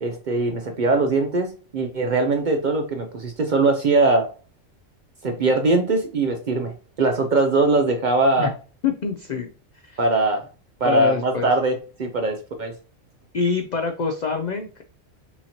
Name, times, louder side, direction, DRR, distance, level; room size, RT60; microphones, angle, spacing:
voice 1, 0.0-4.3 5.2-6.7 7.0-8.5 10.0-10.4 10.8-12.7, right 2 dB, 55° right, 4 dB, 0.5 m, -21 dB
voice 2, 8.8-9.5 9.8-10.0 10.8-11.5 13.3-14.8, left 5 dB, 70° left, 5 dB, 0.4 m, -25 dB
5.6 x 2.8 x 2.9 m, 0.36 s
omnidirectional pair, 1.3 m